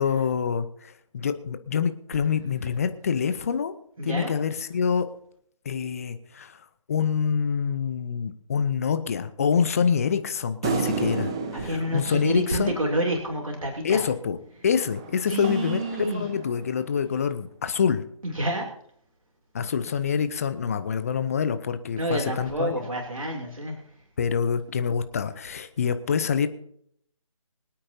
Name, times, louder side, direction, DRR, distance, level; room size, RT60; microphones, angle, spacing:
voice 1, 0.0-3.7 4.0-5.1 5.6-6.6 6.9-11.3 11.6-12.8 13.8-14.4 14.6-18.0 19.5-22.8 24.2-26.5, left 6 dB, 25° left, 11 dB, 0.7 m, -26 dB
voice 2, 4.0-4.3 11.5-14.0 15.3-16.3 18.2-18.7 22.0-23.8, right 1 dB, 70° right, 0 dB, 3.0 m, -28 dB
sound 1, 10.6-13.3 14.8-16.8, right 4 dB, 10° right, 0.4 m, -32 dB
25.0 x 8.7 x 2.8 m, 0.67 s
figure-of-eight pair, 150°, 18 cm